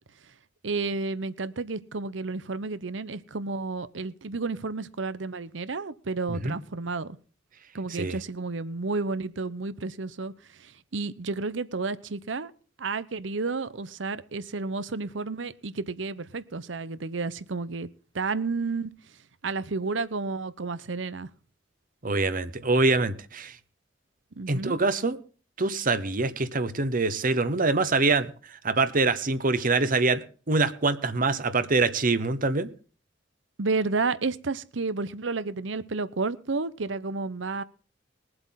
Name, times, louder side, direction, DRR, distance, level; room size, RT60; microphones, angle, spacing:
voice 1, 0.6-7.2 7.7-10.3 10.6-12.5 12.8-17.9 18.1-18.9 19.4-21.3 24.4-24.7 33.6-37.6, right 3 dB, 80° right, 0.8 m, -31 dB
voice 2, 22.0-23.5 24.5-25.2 25.6-28.3 28.6-32.7, right 3 dB, 50° right, 1.0 m, -24 dB
21.5 x 7.9 x 3.9 m
head